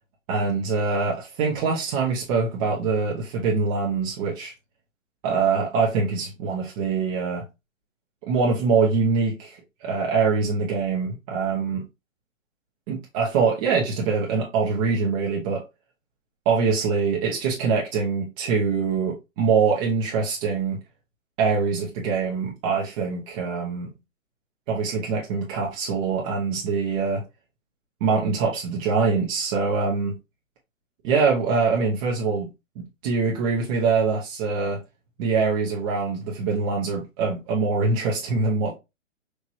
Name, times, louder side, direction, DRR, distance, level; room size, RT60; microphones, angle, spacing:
voice 1, 0.3-4.5 5.2-7.5 8.3-11.8 12.9-15.6 16.4-20.8 21.4-23.9 24.7-27.2 28.0-30.2 31.0-32.5 32.8-34.8 35.2-38.7, right 4 dB, 30° right, 0.9 m, -24 dB
4.7 x 2.8 x 2.7 m
hypercardioid pair, 135°, 39 cm